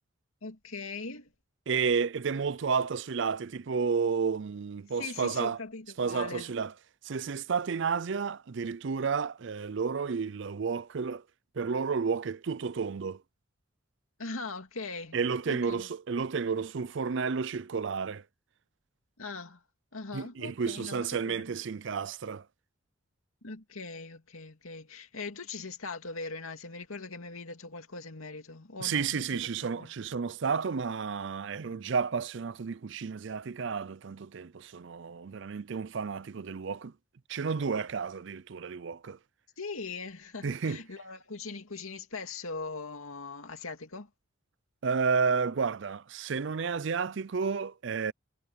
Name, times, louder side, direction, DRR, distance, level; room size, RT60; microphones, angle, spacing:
voice 1, 0.4-1.3 5.0-6.5 14.2-15.2 15.5-15.9 19.2-19.6 19.9-21.5 23.4-29.9 39.6-44.1, left 3 dB, 90° left, 2.5 m, -40 dB
voice 2, 1.7-5.6 6.0-6.7 7.0-11.2 11.6-13.2 15.1-18.2 20.1-22.4 28.8-36.9 37.3-39.2 40.4-40.8 44.8-48.1, right 5 dB, 60° right, 0.5 m, -31 dB
head